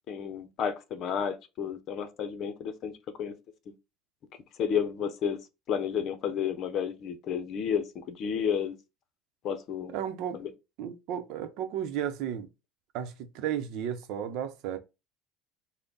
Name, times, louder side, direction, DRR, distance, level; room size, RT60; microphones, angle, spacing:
voice 1, 0.1-2.9 3.2-3.3 4.6-5.4 5.7-8.7 9.4-9.9 10.3-10.5, left 7 dB, 50° left, 0.7 m, -31 dB
voice 2, 9.9-10.4 10.8-12.5 12.9-14.8, right 9 dB, 70° right, 0.7 m, -33 dB
5.6 x 2.2 x 4.0 m
cardioid pair, 145°, 0 cm